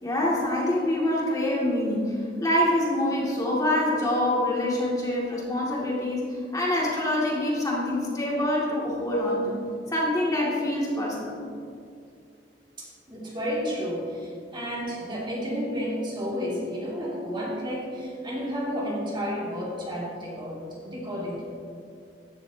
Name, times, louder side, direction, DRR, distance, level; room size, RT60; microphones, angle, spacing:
voice 1, 0.0-9.6 9.9-11.4, left 1 dB, 20° left, -5 dB, 2.4 m, -25 dB
voice 2, 12.8-21.4, equal, 30° right, -4 dB, 2.5 m, -31 dB
15.0 x 11.5 x 2.9 m, 2.4 s
head